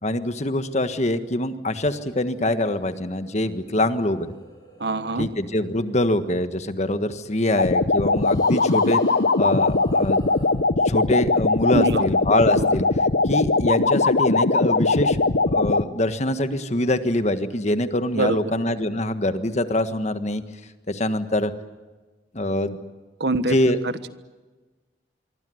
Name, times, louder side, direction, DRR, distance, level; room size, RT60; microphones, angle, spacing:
voice 1, 0.0-4.3 5.2-9.0 9.4-10.2 10.8-12.8 13.2-15.2 15.5-20.4 20.9-21.5 22.3-22.8 23.3-23.8, left 1 dB, 40° left, 10 dB, 1.5 m, -24 dB
sound 1, 1.5-7.1 8.2-10.5, equal, 20° left, 7.8 m, -45 dB
voice 2, 4.8-5.3 11.7-12.0 12.5-12.7 18.1-18.4 23.2-23.6 23.8-24.1, right 2 dB, 65° right, 12 dB, 1.3 m, -24 dB
sound 2, 7.6-15.8, left 3 dB, 65° left, 1.0 m, -20 dB
25.5 x 24.0 x 7.9 m, 1.2 s
head